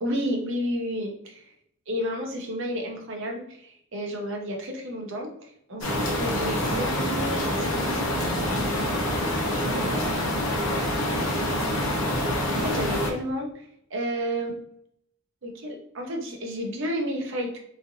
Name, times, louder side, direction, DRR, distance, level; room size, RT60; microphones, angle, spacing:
voice 1, 0.0-1.4 1.9-8.9 9.7-11.1 12.6-14.5 15.4-17.6, equal, 60° right, 1 dB, 0.7 m, -32 dB
sound 1, 5.8-13.1, left 1 dB, 65° left, 0.8 m, -26 dB
3.1 x 2.5 x 2.5 m, 0.70 s
head